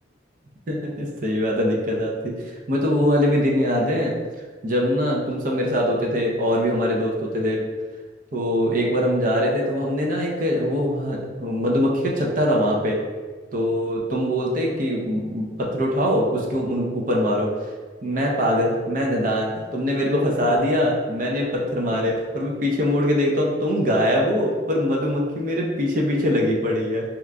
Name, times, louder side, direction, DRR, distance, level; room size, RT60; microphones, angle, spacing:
voice 1, 0.7-2.3 2.7-4.1 4.6-7.6 8.3-13.0 13.5-17.5 18.0-27.0, equal, 50° right, -2 dB, 0.6 m, -22 dB
2.9 x 2.4 x 3.3 m, 1.4 s
head